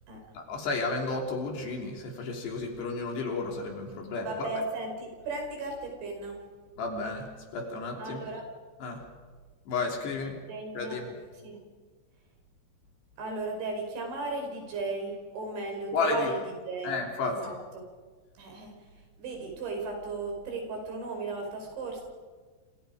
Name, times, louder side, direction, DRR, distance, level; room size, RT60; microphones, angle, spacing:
voice 1, 0.4-4.5 6.8-8.3 8.8-9.0 9.7-10.4 10.8-11.1 15.9-16.3 16.8-17.4, left 3 dB, 65° left, 1 dB, 5.5 m, -32 dB
voice 2, 4.2-6.4 8.0-8.4 10.5-11.0 11.4-11.6 13.2-16.4 16.6-17.0 17.3-17.8 18.4-18.9 19.2-22.0, right 3 dB, 80° right, 2 dB, 7.3 m, -36 dB
27.5 x 27.0 x 5.2 m, 1.4 s
omnidirectional pair, 5.2 m